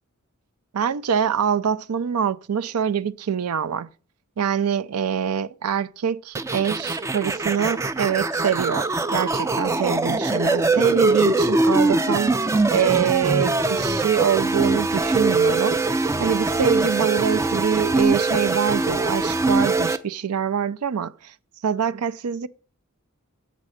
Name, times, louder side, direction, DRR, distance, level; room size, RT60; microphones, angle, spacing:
voice 1, 0.7-3.9 4.4-12.4 12.7-21.3 21.6-22.5, right 8 dB, 85° right, 0.4 m, -24 dB
sound 1, 6.3-20.0, right 3 dB, 15° right, 0.3 m, -22 dB
7.5 x 5.2 x 6.3 m
head